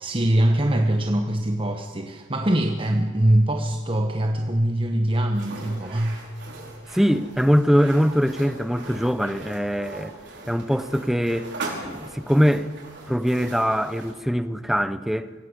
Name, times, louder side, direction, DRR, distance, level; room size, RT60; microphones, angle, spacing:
voice 1, 0.0-6.2, right 1 dB, 25° right, 1.2 m, -23 dB
sound 1, 5.3-14.2, right 2 dB, 55° right, 5.3 m, -39 dB
voice 2, 6.9-10.1 10.5-11.5 11.8-12.7 13.1-15.3, equal, ahead, 0.7 m, -22 dB
25.5 x 17.0 x 8.1 m
head